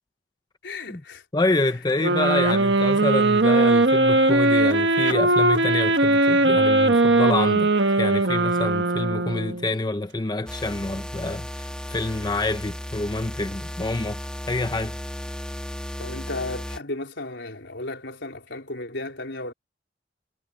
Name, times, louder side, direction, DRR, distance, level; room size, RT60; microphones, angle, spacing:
voice 1, 0.6-1.2 16.0-19.5, left 2 dB, 85° left, 4.2 m, -34 dB
voice 2, 1.3-7.7 8.0-14.2 14.5-14.9, left 2 dB, 25° left, 0.7 m, -27 dB
sound 1, 2.0-9.7, right 2 dB, 75° right, 1.5 m, -19 dB
sound 2, 10.5-16.8, equal, 5° left, 2.4 m, -35 dB
head